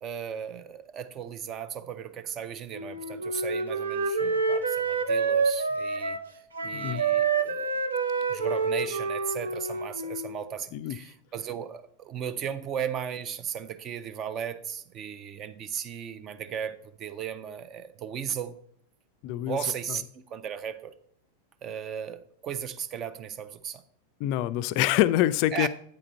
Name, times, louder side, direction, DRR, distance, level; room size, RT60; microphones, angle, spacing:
voice 1, 0.0-6.2 6.6-7.7 8.3-18.6 19.4-20.9 21.6-23.8 25.5-25.7, right 8 dB, 30° right, 0.6 m, -36 dB
Wind instrument woodwind instrument, 2.7-6.3 6.5-10.4, right 4 dB, 70° right, 0.6 m, -28 dB
voice 2, 6.7-7.1 10.7-11.0 19.2-19.6 24.2-25.7, left 14 dB, 45° left, 0.4 m, -25 dB
8.8 x 5.0 x 4.4 m
figure-of-eight pair, 90°, 0 cm